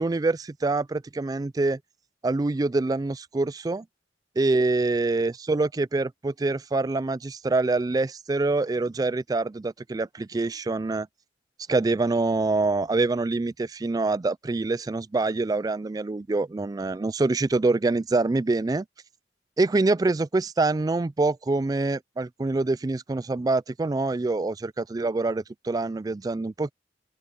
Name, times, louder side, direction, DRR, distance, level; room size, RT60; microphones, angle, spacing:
voice 1, 0.0-1.8 2.2-3.8 4.4-11.1 11.7-18.8 19.6-26.7, right 3 dB, 20° right, 0.3 m, -25 dB
open air
head